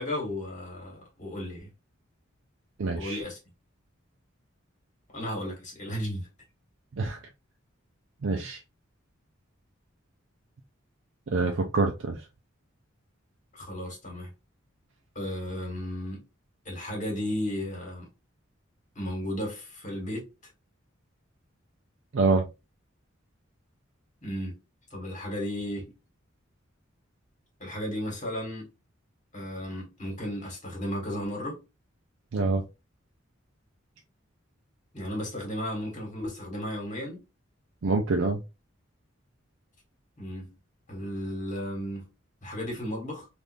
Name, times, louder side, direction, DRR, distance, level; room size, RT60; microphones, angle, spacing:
voice 1, 0.0-1.7 2.9-3.4 5.1-6.3 8.4-8.5 13.5-14.3 15.1-16.2 16.6-18.1 18.9-20.3 24.2-24.6 24.9-25.9 27.6-28.7 29.3-31.6 34.9-37.2 40.2-40.5 40.9-42.1 42.4-43.3, equal, 40° left, 1.4 m, -34 dB
voice 2, 2.8-3.2 6.9-7.2 8.2-8.6 11.3-12.2 22.1-22.4 32.3-32.6 37.8-38.4, right 3 dB, 65° right, 0.5 m, -26 dB
3.5 x 2.5 x 2.5 m
head